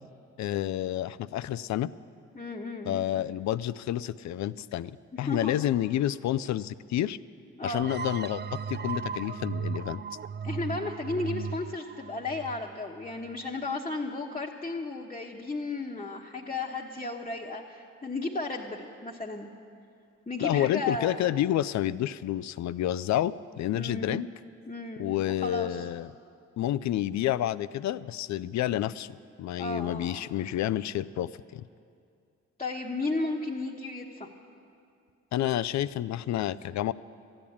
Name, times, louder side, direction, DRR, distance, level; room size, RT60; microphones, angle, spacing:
voice 1, 0.4-1.9 2.9-7.2 7.6-10.0 20.4-24.3 25.0-26.1 26.6-31.6 35.3-36.9, left 12 dB, 65° left, 17 dB, 0.4 m, -29 dB
voice 2, 2.3-3.1 5.1-5.5 7.5-7.9 10.4-19.5 20.3-21.2 23.7-24.2 24.7-25.9 29.6-30.3 32.6-34.3, left 3 dB, 20° left, -3 dB, 1.2 m, -34 dB
sound 1, 7.8-13.3, right 6 dB, 35° right, 0.5 m, -36 dB
13.5 x 8.8 x 8.5 m, 2.4 s
supercardioid pair, 55°, 30 cm